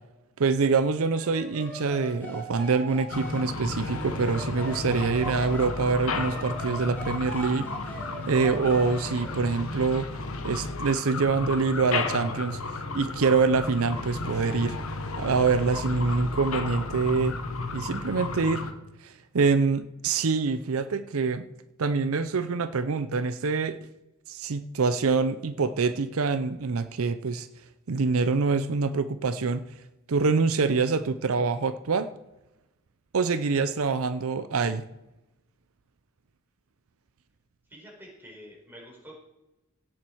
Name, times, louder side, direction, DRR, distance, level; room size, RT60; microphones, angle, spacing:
voice 1, 0.4-7.7 8.3-10.1 10.4-12.6 12.9-14.8 15.2-17.4 17.7-18.6 19.0-21.4 21.8-23.8 24.3-27.5 27.9-29.6 30.1-32.1 33.1-34.8, right 4 dB, 70° right, 12 dB, 0.6 m, -25 dB
sound 1, 1.1-5.7 6.1-9.3, right 2 dB, 10° left, 5.2 m, -40 dB
sound 2, 3.1-18.7, left 3 dB, 70° left, 1.2 m, -33 dB
voice 2, 37.7-39.2, equal, 10° right, -3 dB, 4.6 m, -48 dB
17.0 x 7.4 x 4.6 m, 0.97 s
head